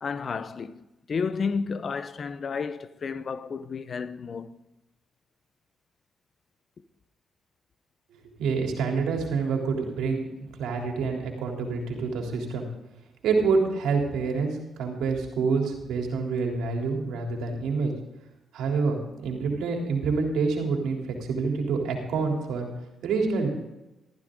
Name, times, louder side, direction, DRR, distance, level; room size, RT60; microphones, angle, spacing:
voice 1, 0.0-4.6, left 5 dB, 50° left, 1.0 m, -32 dB
voice 2, 8.4-10.3 10.6-12.7 13.2-17.9 18.5-22.7 23.0-23.5, right 4 dB, 85° right, 3.4 m, -27 dB
15.0 x 14.5 x 3.9 m
cardioid pair, 65°, 0 cm